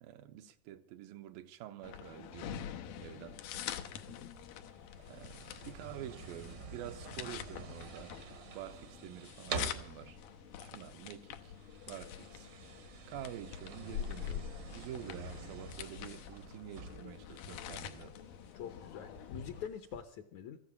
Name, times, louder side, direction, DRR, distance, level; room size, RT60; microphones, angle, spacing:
voice 1, 0.0-2.7 3.0-3.4 5.1-8.2 8.5-10.2 10.6-11.5 11.9-12.5 13.1-18.1, right 11 dB, 85° right, 2.6 m, -48 dB
sound 1, 1.8-19.7, left 9 dB, 90° left, 2.7 m, -46 dB
sound 2, 3.0-20.0, right 5 dB, 65° right, 1.1 m, -49 dB
voice 2, 3.9-4.3 18.5-20.6, left 8 dB, 70° left, 1.8 m, -45 dB
sound 3, 8.6-18.5, left 4 dB, 45° left, 0.8 m, -64 dB
14.0 x 9.4 x 8.5 m
omnidirectional pair, 4.0 m